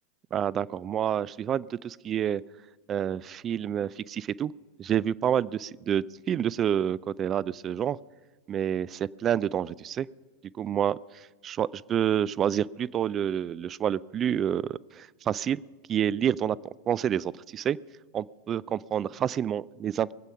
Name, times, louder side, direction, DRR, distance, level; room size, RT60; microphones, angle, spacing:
voice 1, 0.3-2.4 2.9-4.5 4.8-8.0 8.5-10.1 10.6-15.6 15.9-16.6 16.9-17.8 18.1-20.1, right 9 dB, 30° right, 21 dB, 0.4 m, -28 dB
22.0 x 8.2 x 5.6 m, 1.3 s
figure-of-eight pair, 90°, 0 cm